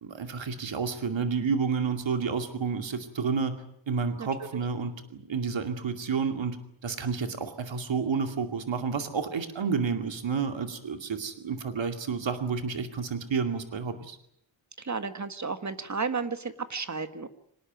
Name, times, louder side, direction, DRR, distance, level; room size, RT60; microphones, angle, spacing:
voice 1, 0.0-6.6 6.8-14.2, right 5 dB, 75° right, 7 dB, 2.5 m, -30 dB
voice 2, 14.8-17.3, right 4 dB, 40° right, 10 dB, 1.7 m, -33 dB
25.5 x 19.0 x 9.2 m, 0.72 s
wide cardioid pair, 125°, 45 cm